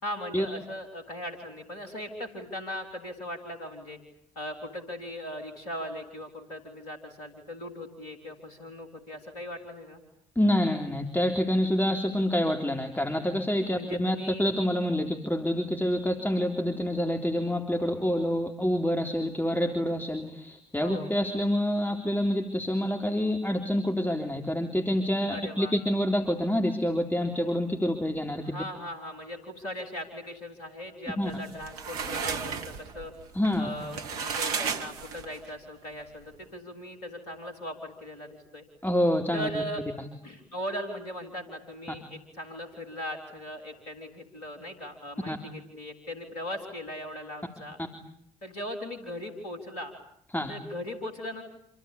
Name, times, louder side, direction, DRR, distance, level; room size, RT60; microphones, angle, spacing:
voice 1, 0.0-4.0 4.4-10.0 13.6-14.4 20.8-21.1 25.3-25.7 28.4-33.1 33.6-38.6 39.3-39.8 40.2-47.8 48.4-49.9 50.5-51.4, equal, 80° left, 5 dB, 3.7 m, -39 dB
voice 2, 10.4-28.4 31.2-31.3 33.3-33.7 38.8-39.5 45.3-45.4 50.3-50.5, equal, 10° left, 3 dB, 3.6 m, -27 dB
sound 1, 31.3-35.5, right 6 dB, 75° right, 1.5 m, -34 dB
27.5 x 25.0 x 8.4 m, 0.69 s
figure-of-eight pair, 45°, 19 cm